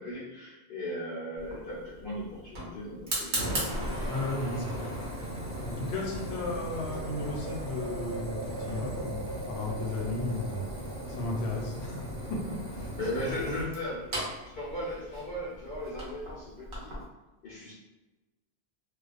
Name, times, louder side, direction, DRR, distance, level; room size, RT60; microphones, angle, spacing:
voice 1, 0.0-3.5 3.9-4.1 13.0-17.0 17.4-17.7, left 1 dB, 60° left, -7 dB, 0.8 m, -37 dB
Fire, 1.4-17.0, right 1 dB, 85° right, 1.0 m, -37 dB
voice 2, 4.0-5.1 5.6-12.4 12.7-12.9 13.2-13.7, left 2 dB, 85° left, -1 dB, 0.9 m, -35 dB
sound 1, 5.5-13.5, right 2 dB, 35° right, 1.0 m, -43 dB
2.3 x 2.2 x 2.4 m, 1.1 s
omnidirectional pair, 1.1 m